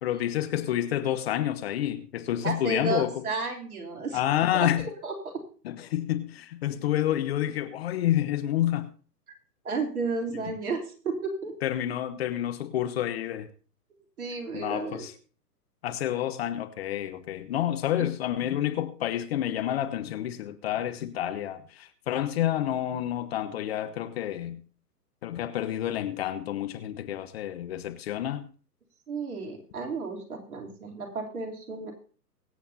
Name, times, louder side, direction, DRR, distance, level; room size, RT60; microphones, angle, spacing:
voice 1, 0.0-3.2 4.1-4.9 5.6-8.9 10.3-10.4 11.6-13.5 14.5-15.1 15.8-24.6 25.2-28.5, left 12 dB, 40° left, 1.1 m, -29 dB
voice 2, 2.4-4.2 4.5-4.7 5.0-5.2 9.7-11.5 14.2-15.1 18.0-18.1 29.1-31.9, right 4 dB, 60° right, 3.3 m, -32 dB
23.5 x 8.3 x 2.8 m
figure-of-eight pair, 125°, 48 cm